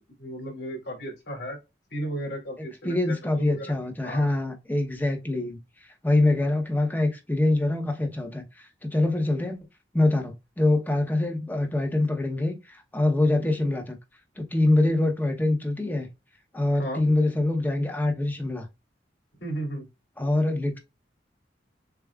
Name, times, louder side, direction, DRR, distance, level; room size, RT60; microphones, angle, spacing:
voice 1, 0.2-1.6 1.9-3.6 4.0-4.5 13.2-13.4 14.8-14.9 16.7-17.0 19.4-19.8, right 1 dB, 75° left, 2.9 m, -35 dB
voice 2, 2.6-5.6 6.0-9.6 9.9-14.0 14.4-16.1 16.5-18.7 20.2-20.8, left 2 dB, 10° left, 0.9 m, -24 dB
6.9 x 2.4 x 2.4 m
head